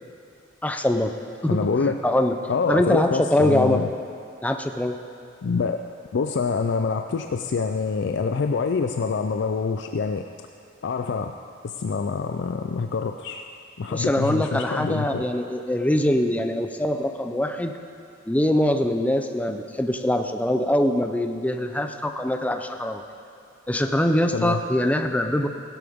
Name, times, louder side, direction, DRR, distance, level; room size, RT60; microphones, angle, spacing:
voice 1, 0.6-1.1 1.4-1.7 2.0-2.4 2.7-3.8 4.4-5.0 13.9-17.7 18.3-23.0 23.7-25.5, left 1 dB, 5° left, 5 dB, 0.5 m, -23 dB
voice 2, 1.5-2.0 2.5-3.9 5.4-5.8 6.1-10.3 10.8-11.3 11.6-13.5 13.8-15.2 24.3-24.6, left 5 dB, 60° left, 6 dB, 0.4 m, -26 dB
16.5 x 11.5 x 3.6 m, 2.4 s
head